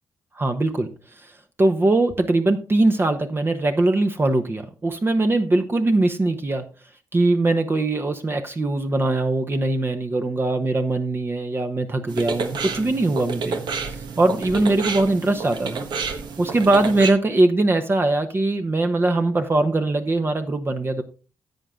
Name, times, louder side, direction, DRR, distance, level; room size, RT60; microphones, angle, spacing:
voice 1, 0.4-0.9 1.6-6.6 7.1-13.6 13.8-15.8 16.4-21.0, right 2 dB, 30° right, 7 dB, 1.0 m, -21 dB
sound 1, 12.1-17.1, right 5 dB, 75° right, 1.4 m, -30 dB
10.5 x 7.6 x 3.7 m, 0.35 s
cardioid pair, 70°, 8 cm